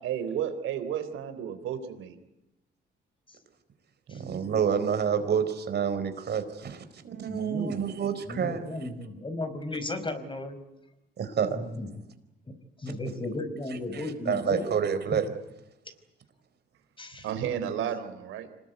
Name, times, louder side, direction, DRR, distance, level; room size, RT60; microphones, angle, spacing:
voice 1, 0.0-2.2 17.2-18.5, right 9 dB, 85° right, 9 dB, 4.0 m, -32 dB
voice 2, 4.1-8.6 11.2-11.6 13.9-15.3, right 7 dB, 55° right, 9 dB, 4.3 m, -28 dB
voice 3, 7.2-7.8 8.3-10.6 11.5-11.9 12.8-14.9 17.0-17.3, left 2 dB, 25° left, 10 dB, 4.9 m, -35 dB
26.5 x 20.5 x 9.4 m, 0.92 s
cardioid pair, 90°, 20 cm